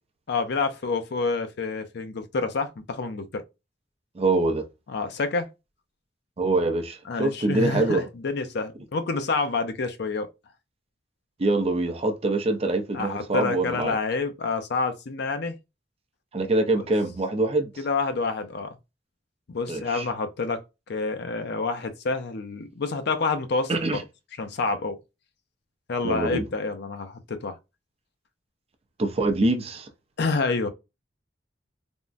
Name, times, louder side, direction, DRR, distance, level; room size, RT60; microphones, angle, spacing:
voice 1, 0.3-3.4 4.9-5.5 7.1-10.3 12.9-15.6 16.7-16.8 17.8-18.8 19.5-23.9 24.4-25.0 25.9-27.6 30.2-30.7, left 4 dB, 60° left, 0.5 m, -28 dB
voice 2, 4.2-4.6 6.4-8.1 11.4-14.0 16.3-17.7 19.7-20.1 23.7-24.0 26.0-26.4 29.0-29.9, right 2 dB, 35° right, 0.5 m, -24 dB
3.5 x 2.1 x 2.5 m
head